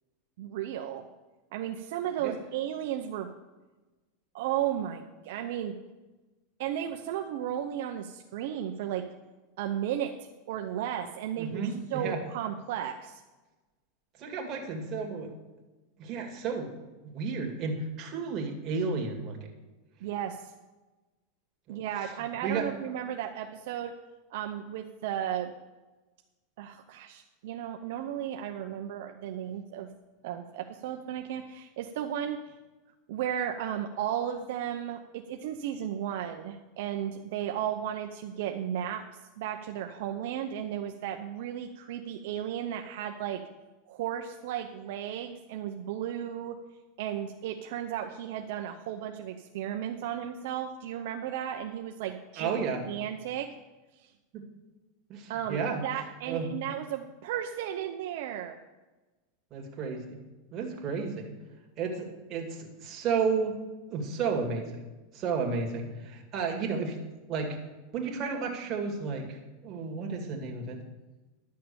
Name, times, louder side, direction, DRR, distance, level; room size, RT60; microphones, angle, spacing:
voice 1, 0.4-1.0 1.5-3.3 4.3-5.8 6.6-9.0 9.6-10.1 10.5-13.2 20.0-20.5 21.7-23.9 24.3-25.5 26.6-29.9 30.2-32.5 33.1-39.0 39.4-43.4 43.9-46.6 47.0-52.6 52.9-53.5 54.0-54.1 55.3-58.6, right 10 dB, 65° right, 4 dB, 0.7 m, -34 dB
voice 2, 11.4-12.2 14.2-15.3 16.0-16.7 17.1-19.5 21.7-21.8 22.4-22.7 52.4-52.8 54.3-54.4 55.1-55.8 56.3-56.5 59.5-60.2 60.5-61.3 61.8-63.6 63.9-64.7 65.1-66.9 67.3-67.6 67.9-69.4 69.6-70.8, right 5 dB, 30° right, 1 dB, 2.3 m, -32 dB
11.5 x 6.6 x 7.0 m, 1.2 s
supercardioid pair, 150°, 0 cm